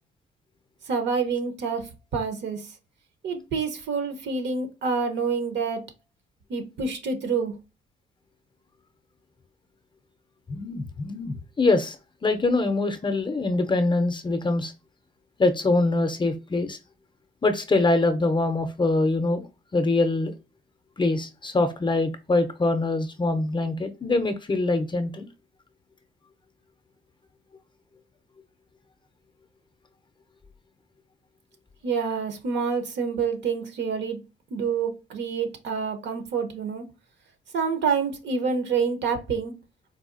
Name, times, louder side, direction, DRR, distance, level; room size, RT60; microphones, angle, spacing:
voice 1, 0.9-2.7 3.2-5.8 6.5-7.5 31.8-34.2 34.5-36.8 37.5-39.5, right 5 dB, 65° right, 0.8 m, -27 dB
voice 2, 10.5-12.0 12.2-14.7 15.4-16.8 17.4-19.5 19.7-20.3 21.0-25.3, left 2 dB, 25° left, 0.5 m, -24 dB
4.0 x 2.3 x 2.5 m
cardioid pair, 90°, 20 cm